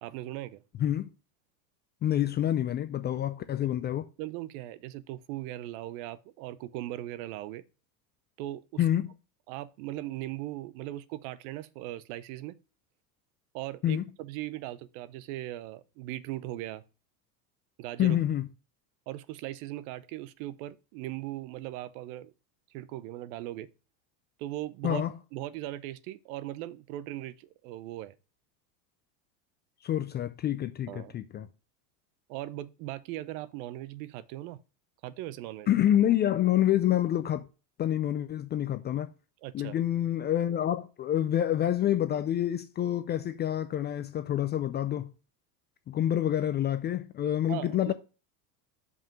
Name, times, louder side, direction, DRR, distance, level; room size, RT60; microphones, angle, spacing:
voice 1, 0.0-0.6 4.2-7.6 8.4-8.8 9.5-12.6 13.5-16.8 17.8-18.2 19.1-22.3 22.7-23.7 24.4-25.1 25.3-28.1 30.9-31.2 32.3-34.6 35.0-35.7 39.4-39.8 47.5-47.9, right 15 dB, 60° right, 0.8 m, -39 dB
voice 2, 0.8-1.1 2.0-4.1 8.8-9.1 13.8-14.0 18.0-18.5 24.8-25.1 29.8-31.5 35.7-37.5 37.8-39.1 39.5-45.1 45.9-47.9, left 11 dB, 25° left, 0.3 m, -27 dB
5.6 x 4.9 x 5.9 m
hypercardioid pair, 105°, 49 cm